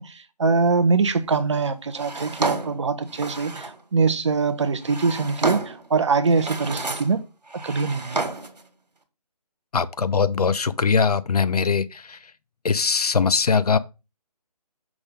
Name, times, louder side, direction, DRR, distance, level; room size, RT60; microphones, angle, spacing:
voice 1, 0.0-7.2 7.5-8.2, right 4 dB, 45° right, 0.8 m, -23 dB
Drawer open or close, 2.0-3.8 4.6-5.9 6.3-7.2 7.5-8.6, right 3 dB, 80° right, 1.7 m, -30 dB
voice 2, 9.7-12.3 12.6-13.8, left 5 dB, 65° left, 0.6 m, -21 dB
6.1 x 3.6 x 5.1 m
figure-of-eight pair, 155°, 21 cm